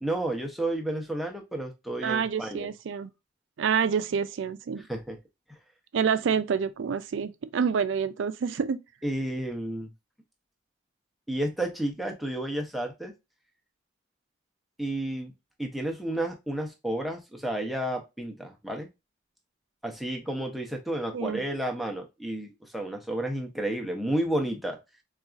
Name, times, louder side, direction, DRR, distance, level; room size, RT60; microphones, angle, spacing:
voice 1, 0.0-2.7 4.9-5.2 9.0-9.9 11.3-13.1 14.8-15.3 15.6-18.9 19.8-24.8, right 1 dB, ahead, 0.5 m, -31 dB
voice 2, 2.0-3.1 3.6-4.9 5.9-8.8 21.1-21.4, right 6 dB, 75° right, 0.4 m, -27 dB
3.9 x 2.4 x 2.3 m
head